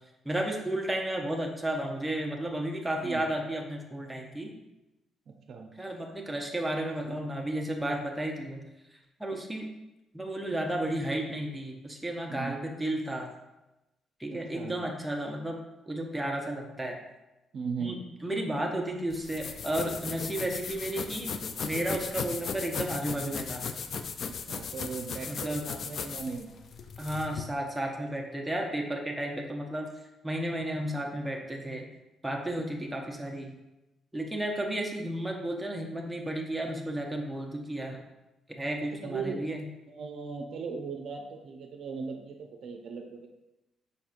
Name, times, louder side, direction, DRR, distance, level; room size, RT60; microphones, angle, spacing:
voice 1, 0.2-4.5 5.8-8.6 9.2-9.7 10.1-13.3 14.2-15.6 15.9-17.0 17.8-21.3 21.6-23.6 25.3-25.6 27.0-29.9 30.2-31.9 32.2-33.6 34.1-38.0 38.5-39.6, right 1 dB, 5° right, 0 dB, 0.7 m, -33 dB
voice 2, 5.3-5.7 12.3-12.6 14.3-14.8 17.5-18.0 24.3-26.5 39.0-39.4 39.9-43.3, right 5 dB, 60° right, 3 dB, 0.5 m, -38 dB
sound 1, 19.1-27.4, left 5 dB, 55° left, 0.4 m, -37 dB
5.1 x 4.2 x 2.5 m, 0.99 s
cardioid pair, 90°, 0 cm